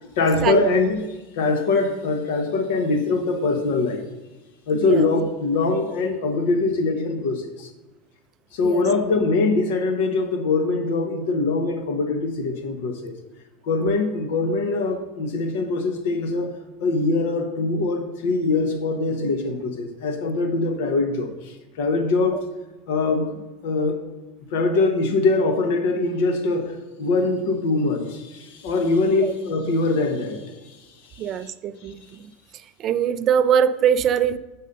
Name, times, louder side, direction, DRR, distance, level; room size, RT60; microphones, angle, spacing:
voice 1, 0.2-1.1 1.3-4.0 4.7-7.7 8.5-13.1 13.6-16.5 16.8-22.4 22.9-23.3 23.6-24.0 24.5-30.8 31.1-31.5, left 3 dB, 65° left, 1.0 m, -23 dB
voice 2, 4.7-5.1 8.6-8.9 22.3-22.4 29.2-29.3 31.2-32.2 32.8-34.4, right 8 dB, 30° right, 0.3 m, -22 dB
6.4 x 4.2 x 5.3 m
supercardioid pair, 165°, 0 cm